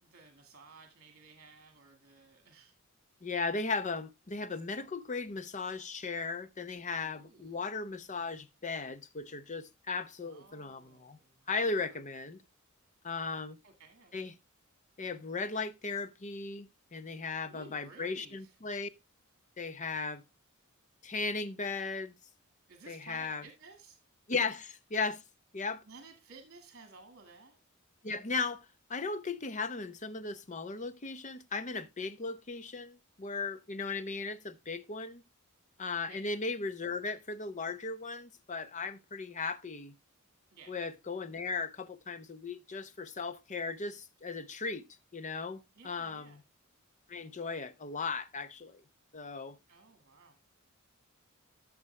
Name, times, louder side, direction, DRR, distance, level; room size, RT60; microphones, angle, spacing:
voice 1, 0.0-2.7 4.7-4.9 7.0-7.7 10.2-11.5 13.6-14.3 17.5-18.6 22.7-24.0 25.9-27.6 36.1-36.3 40.5-40.8 45.7-46.4 49.7-50.4, right 4 dB, 50° right, 1.8 m, -55 dB
voice 2, 3.2-11.2 11.5-12.4 13.0-13.6 14.1-14.3 15.0-18.9 19.6-20.2 21.0-22.1 22.9-23.4 24.3-25.2 25.5-25.8 28.0-35.2 35.8-39.9 40.7-44.8 45.1-46.4 47.1-48.8 49.1-49.6, left 4 dB, 35° left, 0.7 m, -37 dB
13.5 x 6.1 x 3.2 m
head